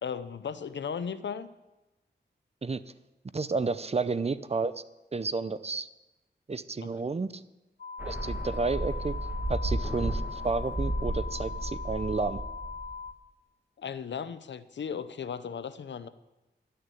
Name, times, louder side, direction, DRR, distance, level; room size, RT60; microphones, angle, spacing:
voice 1, 0.0-1.5 6.8-6.9 13.8-16.1, left 7 dB, 80° left, 13 dB, 0.7 m, -36 dB
voice 2, 3.3-4.7 5.1-5.9 6.5-7.4 8.0-9.1 9.5-12.4, right 4 dB, 35° right, 14 dB, 0.6 m, -31 dB
sound 1, 7.8-13.1, left 5 dB, 60° left, 1.4 m, -40 dB
sound 2, 8.0-13.1, right 1 dB, 10° right, 1.6 m, -33 dB
12.0 x 6.7 x 9.3 m, 1.0 s
wide cardioid pair, 70°, 18 cm